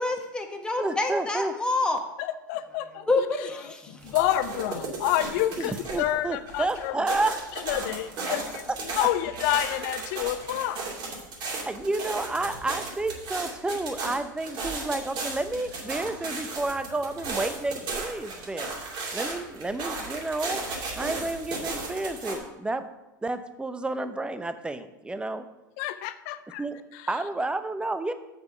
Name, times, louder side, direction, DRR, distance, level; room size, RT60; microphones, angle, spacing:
voice 1, 0.0-2.0 3.1-4.1, left 2 dB, 10° left, 3 dB, 1.2 m, -27 dB
voice 2, 0.8-1.6 5.6-7.3 8.3-8.4 11.7-18.7 19.1-20.6 21.0-22.9 23.2-25.4 26.6-26.8 27.1-28.1, right 2 dB, 10° right, 11 dB, 0.7 m, -30 dB
voice 3, 2.2-7.0 7.7-10.8 25.8-26.6 26.9-27.1, left 13 dB, 60° left, 13 dB, 0.5 m, -29 dB
sound 1, 4.0-6.2 6.5-22.4, right 3 dB, 45° right, 2.7 m, -35 dB
6.9 x 6.7 x 5.5 m, 0.98 s
hypercardioid pair, 90°, 10 cm